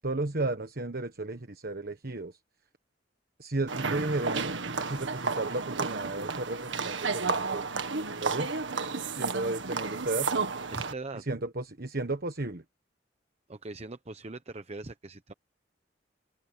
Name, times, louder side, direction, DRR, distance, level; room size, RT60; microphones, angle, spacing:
voice 1, 0.0-2.4 3.4-4.6 4.8-7.7 8.2-8.6 9.1-10.3 11.1-12.6, right 2 dB, 55° right, 1.4 m, -33 dB
sound 1, 3.7-10.9, right 4 dB, 75° right, 1.7 m, -32 dB
voice 2, 10.7-11.3 13.5-15.3, right 2 dB, 35° right, 0.9 m, -41 dB
head